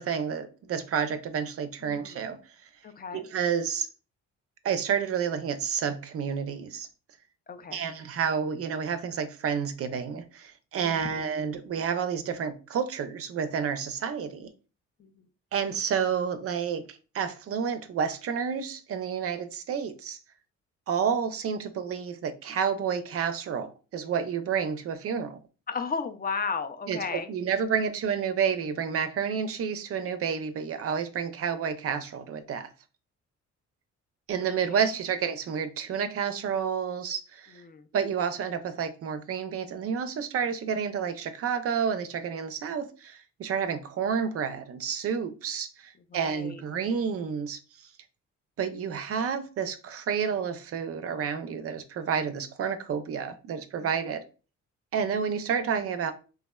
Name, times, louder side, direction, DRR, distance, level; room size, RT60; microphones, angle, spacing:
voice 1, 0.0-2.4 3.1-3.9 4.6-6.9 7.7-14.5 15.5-20.2 20.9-25.4 26.9-32.7 34.3-37.5 37.9-47.6 48.6-54.2 54.9-56.1, right 7 dB, 50° right, 0.4 m, -30 dB
voice 2, 1.8-2.2 2.8-3.2 7.5-7.8 10.8-11.4 15.0-15.3 25.7-27.3 37.5-37.9 46.1-46.6 52.8-53.0 53.8-54.1, left 5 dB, 30° left, 0.4 m, -35 dB
3.5 x 2.0 x 2.2 m
cardioid pair, 90°, 30 cm